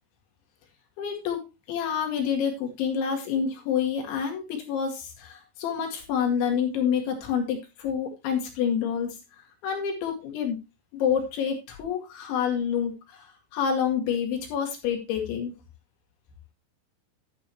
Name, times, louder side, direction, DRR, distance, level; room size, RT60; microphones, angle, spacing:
voice 1, 1.0-1.4 1.7-9.2 9.6-10.6 10.9-13.3 13.5-15.5, left 7 dB, 70° left, 2 dB, 4.2 m, -28 dB
12.0 x 8.6 x 3.0 m, 0.25 s
omnidirectional pair, 5.8 m